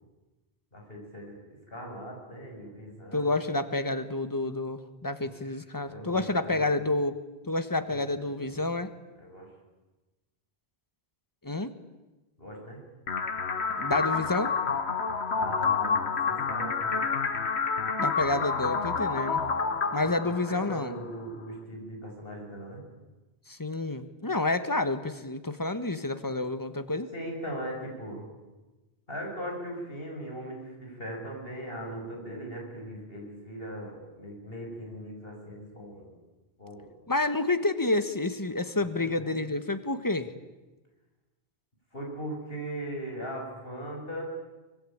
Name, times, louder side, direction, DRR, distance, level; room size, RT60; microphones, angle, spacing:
voice 1, 0.7-1.4 1.7-3.4 5.2-5.3 5.8-6.8 7.9-8.6 9.2-9.5 12.4-12.8 15.3-16.0 16.3-16.9 19.8-22.8 27.1-28.3 29.1-36.1 36.6-36.9 38.8-39.3 41.9-44.2, equal, 65° left, 1 dB, 6.9 m, -39 dB
voice 2, 3.1-7.1 7.4-8.9 11.4-11.7 13.8-14.5 18.0-19.4 19.9-20.9 23.5-27.1 37.1-40.3, left 2 dB, 20° left, 10 dB, 1.4 m, -29 dB
sound 1, 13.1-21.0, left 5 dB, 85° left, 1.6 m, -29 dB
24.5 x 21.0 x 8.8 m, 1.1 s
omnidirectional pair, 1.1 m